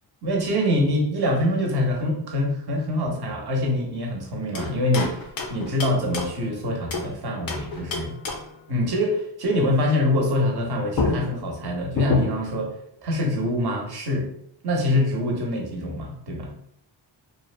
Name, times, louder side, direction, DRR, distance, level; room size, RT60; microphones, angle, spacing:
voice 1, 0.2-5.1 5.5-8.1 8.7-12.7 13.0-14.3 14.6-16.5, left 1 dB, 55° right, 0 dB, 0.7 m, -24 dB
sound 1, 4.5-7.1 7.5-8.6 10.6-10.7 10.9-12.6, left 3 dB, 50° left, 0.4 m, -30 dB
2.6 x 2.1 x 2.4 m, 0.70 s
wide cardioid pair, 125°, 46 cm